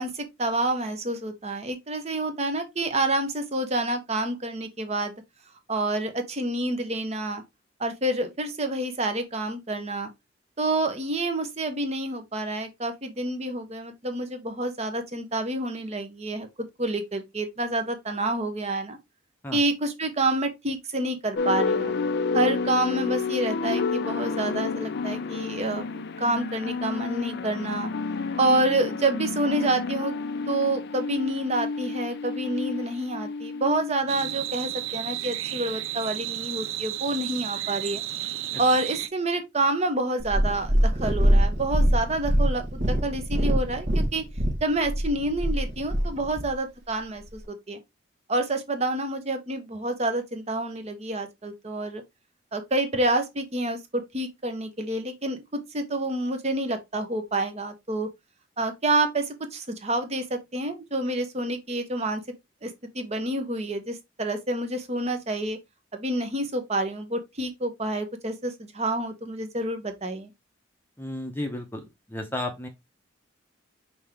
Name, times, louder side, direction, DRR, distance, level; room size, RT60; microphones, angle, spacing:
voice 1, 0.0-5.1 5.7-7.4 7.8-10.1 10.6-19.0 19.5-21.9 22.3-27.9 28.4-30.1 30.5-38.0 38.6-44.2 44.6-47.8 48.3-52.0 52.5-58.1 58.6-62.2 62.6-65.6 65.9-70.3, right 2 dB, 35° right, 0.9 m, -28 dB
sound 1, 21.4-34.7, left 4 dB, 55° left, 0.4 m, -30 dB
sound 2, 34.1-39.1, right 13 dB, 85° right, 0.5 m, -32 dB
Purr, 40.2-46.5 47.3-47.4, equal, 55° right, 1.2 m, -23 dB
voice 2, 71.0-72.7, left 1 dB, 10° left, 0.7 m, -33 dB
5.4 x 2.9 x 3.4 m
head